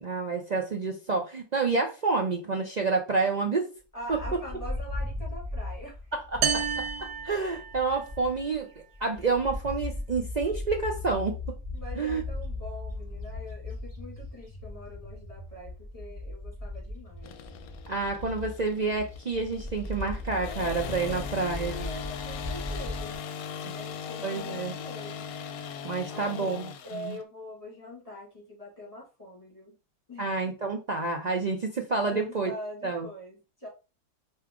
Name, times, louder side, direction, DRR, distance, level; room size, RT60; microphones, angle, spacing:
voice 1, 0.0-3.7 6.1-6.6 7.0-8.7 9.0-11.4 12.0-12.2 17.9-21.8 24.2-24.7 25.8-27.2 30.2-32.5 32.8-33.1, right 4 dB, 70° right, 0.4 m, -29 dB
voice 2, 3.9-6.0 6.5-6.6 11.7-17.4 21.1-23.2 23.7-25.3 26.1-26.5 26.8-29.8 30.1-30.5 32.0-33.7, left 1 dB, 20° left, 2.0 m, -43 dB
Bird, 4.1-8.6 8.9-23.1, left 2 dB, 10° right, 2.8 m, -38 dB
sound 1, 6.4-8.1, right 7 dB, 85° right, 1.2 m, -30 dB
sound 2, 17.2-27.2, left 7 dB, 75° left, 1.0 m, -39 dB
4.7 x 2.8 x 3.6 m
omnidirectional pair, 1.6 m